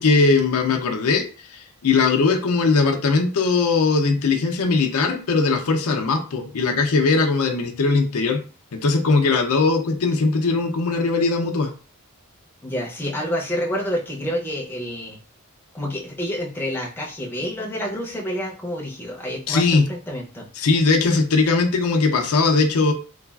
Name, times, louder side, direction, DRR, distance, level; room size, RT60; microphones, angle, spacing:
voice 1, 0.0-8.4 8.7-11.7 19.5-19.9 20.6-22.9, left 4 dB, 75° left, 3 dB, 0.5 m, -20 dB
voice 2, 12.6-15.2 15.7-20.5, equal, 10° left, -3 dB, 0.5 m, -28 dB
3.2 x 2.3 x 2.3 m, 0.36 s
head